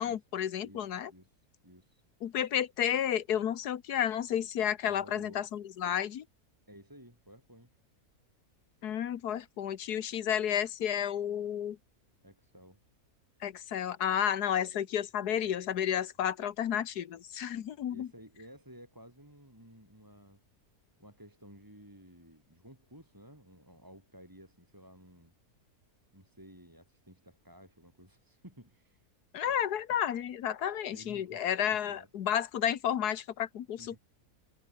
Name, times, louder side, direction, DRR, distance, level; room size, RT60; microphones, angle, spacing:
voice 1, 0.0-1.1 2.2-6.2 8.8-11.8 13.4-18.1 29.3-34.0, left 9 dB, 80° left, 1.6 m, -31 dB
voice 2, 0.6-2.0 4.8-5.5 6.7-7.8 12.2-12.8 15.4-15.8 17.8-20.4 21.0-25.3 26.1-29.1 29.5-29.7 30.9-32.1 33.7-34.0, equal, 10° right, 4.9 m, -55 dB
omnidirectional pair, 1.6 m